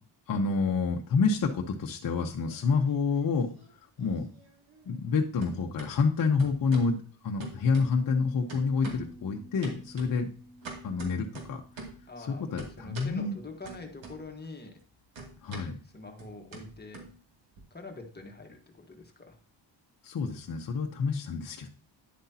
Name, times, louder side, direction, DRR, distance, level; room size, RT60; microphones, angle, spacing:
voice 1, 0.3-3.5 4.0-4.2 4.9-7.0 7.2-10.3 10.8-11.6 12.2-13.4 15.4-15.8 20.0-21.7, left 4 dB, 50° left, 2 dB, 0.9 m, -28 dB
sound 1, 2.4-3.2 3.5-5.1 5.4-5.9 6.4-7.0 7.4-8.2 8.5-9.2 9.6-12.1 12.6-13.2 13.6-14.5 14.7-17.6, right 3 dB, 85° right, 2.6 m, -45 dB
sound 2, 8.0-14.2, equal, 5° left, 2.0 m, -51 dB
voice 2, 12.1-14.8 15.8-17.0 17.7-19.4, left 3 dB, 20° left, 3 dB, 1.4 m, -45 dB
10.5 x 7.8 x 2.8 m, 0.41 s
cardioid pair, 125°, 45 cm